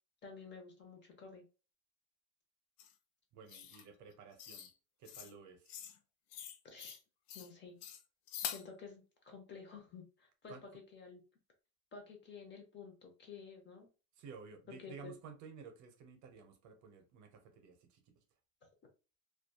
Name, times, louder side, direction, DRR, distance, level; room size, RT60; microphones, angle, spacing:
voice 1, 0.2-1.4 6.6-7.0 7.3-7.8 8.4-11.2 11.9-13.9 14.7-15.1, left 5 dB, 30° left, 0.6 m, -52 dB
sound 1, 2.8-2.9 3.5-3.8 4.4-4.7 5.1-5.3 5.7-6.0 6.3-7.0 7.3-7.5 7.8-8.7, left 9 dB, 80° left, 0.5 m, -45 dB
voice 2, 3.3-4.7 5.0-5.8 10.5-10.7 14.2-18.2, right 5 dB, 50° right, 0.6 m, -54 dB
2.6 x 2.3 x 2.2 m
cardioid pair, 145°, 38 cm